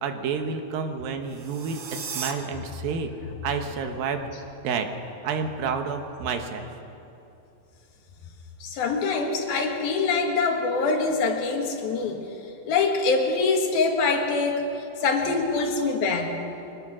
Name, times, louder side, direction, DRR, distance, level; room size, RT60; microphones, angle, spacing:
voice 1, 0.0-3.1 3.4-4.3 4.6-4.9 5.2-6.7, right 5 dB, 85° right, 6 dB, 3.1 m, -29 dB
sound 1, 1.2-2.3, right 6 dB, 55° right, 1.4 m, -35 dB
voice 2, 8.6-12.3 12.7-16.3, left 4 dB, 90° left, 2 dB, 3.8 m, -24 dB
24.0 x 19.0 x 6.2 m, 2.8 s
omnidirectional pair, 4.1 m